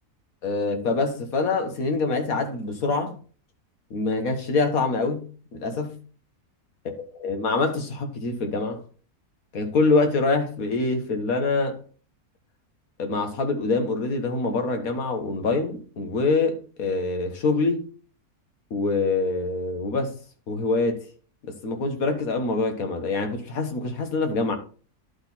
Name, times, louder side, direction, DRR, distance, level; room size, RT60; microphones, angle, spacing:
voice 1, 0.4-3.1 3.9-5.2 5.5-6.0 6.9-8.8 9.5-11.8 13.0-17.8 18.7-20.1 20.5-21.0 21.4-24.6, left 3 dB, 65° left, 1.8 m, -25 dB
11.5 x 4.3 x 4.2 m
omnidirectional pair, 1.6 m